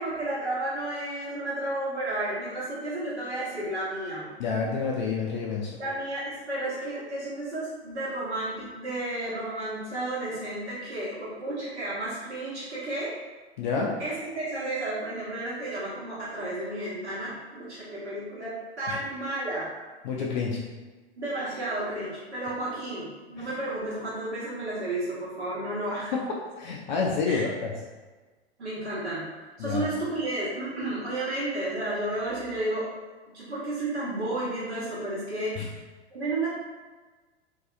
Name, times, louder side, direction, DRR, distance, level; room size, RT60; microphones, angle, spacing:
voice 1, 0.0-4.3 5.8-13.1 14.0-19.7 21.2-26.1 27.2-27.4 28.6-29.3 29.6-32.9 33.3-35.7 36.1-36.5, right 1 dB, 75° right, -9 dB, 1.1 m, -32 dB
voice 2, 4.4-5.8 13.6-14.0 18.9-19.0 20.0-20.6 23.4-23.5 26.1-26.3 26.6-27.7 29.6-29.9 35.6-35.7, left 5 dB, 45° left, -2 dB, 0.4 m, -29 dB
2.6 x 2.3 x 2.4 m, 1.3 s
figure-of-eight pair, 100°, 34 cm